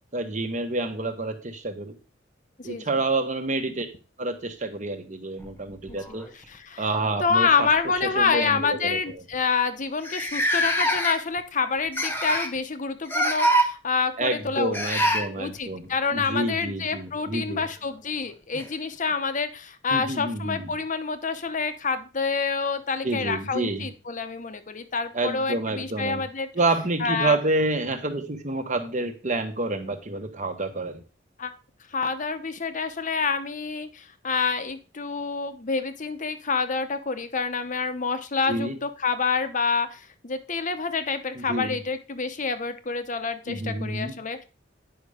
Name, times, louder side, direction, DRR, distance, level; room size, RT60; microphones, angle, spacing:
voice 1, 0.1-2.0 2.6-3.9 4.2-6.3 6.8-7.7 8.0-9.2 14.2-17.6 19.9-20.7 23.0-23.9 25.1-26.2 26.5-31.0 38.4-38.8 41.3-41.8 43.5-44.2, right 2 dB, 40° right, 6 dB, 1.3 m, -28 dB
voice 2, 2.6-2.9 5.9-6.0 6.5-6.9 7.2-14.8 15.4-26.5 27.0-27.4 31.4-31.5 31.9-44.4, left 5 dB, 40° left, 10 dB, 0.9 m, -27 dB
sound 1, 5.4-6.6 7.6-7.8 8.2-8.3 9.1-9.2 9.3-9.4 10.0-11.4 11.9-12.6 13.1-13.7 14.7-15.3 17.4-17.5 18.5-18.6, equal, 10° left, 1.2 m, -24 dB
9.3 x 5.5 x 5.0 m, 0.34 s
head